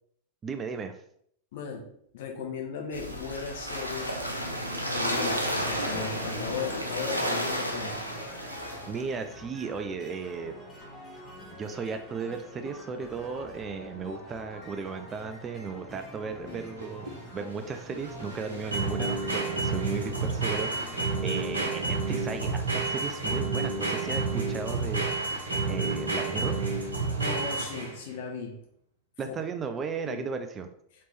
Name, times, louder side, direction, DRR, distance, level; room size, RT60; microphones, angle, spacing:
voice 1, 0.4-1.0 8.9-10.6 11.5-20.9 21.2-25.4 25.7-26.6 29.2-30.7, right 5 dB, 25° right, 8 dB, 0.4 m, -35 dB
voice 2, 1.5-1.9 2.1-4.2 4.9-8.0 27.2-28.5 29.2-29.4 30.0-30.3, left 6 dB, 55° left, 1 dB, 0.9 m, -36 dB
sound 1, 2.9-9.0, equal, 90° right, 0.6 m, -32 dB
sound 2, 5.4-21.1, left 1 dB, 20° left, 1.3 m, -46 dB
sound 3, 16.5-28.1, right 3 dB, 70° right, 1.0 m, -30 dB
4.1 x 3.1 x 3.2 m, 0.69 s
figure-of-eight pair, 90°, 0 cm